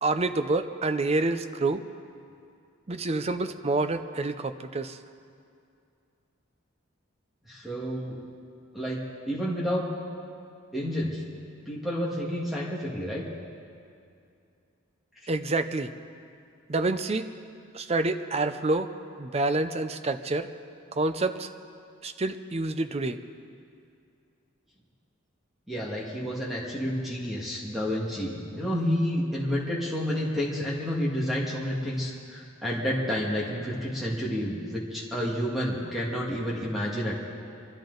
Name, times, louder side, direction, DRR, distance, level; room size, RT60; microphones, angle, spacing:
voice 1, 0.0-1.8 2.9-5.0 15.3-15.9 16.7-17.3 17.7-18.9 19.2-20.5 21.0-21.5 22.0-23.2, right 2 dB, 30° right, 9 dB, 0.6 m, -27 dB
voice 2, 7.5-8.2 8.7-9.0 9.3-9.9 10.7-11.2 11.7-13.2 25.7-37.2, equal, ahead, -5 dB, 1.8 m, -30 dB
24.0 x 13.0 x 4.0 m, 2.5 s
head